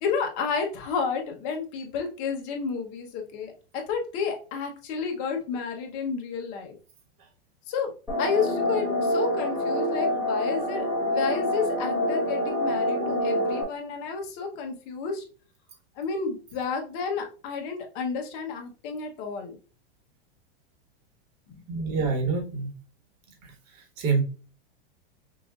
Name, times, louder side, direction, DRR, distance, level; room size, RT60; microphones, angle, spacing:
voice 1, 0.0-3.5 3.9-6.7 7.7-7.9 8.2-15.2 16.0-19.6 21.7-21.8, left 5 dB, 35° left, 3 dB, 1.0 m, -31 dB
sound 1, 8.1-13.6, left 1 dB, 5° right, 1.5 m, -26 dB
voice 2, 21.7-22.8 23.4-24.2, right 4 dB, 40° right, 3 dB, 1.4 m, -27 dB
5.8 x 2.6 x 2.4 m, 0.35 s
supercardioid pair, 165°, 31 cm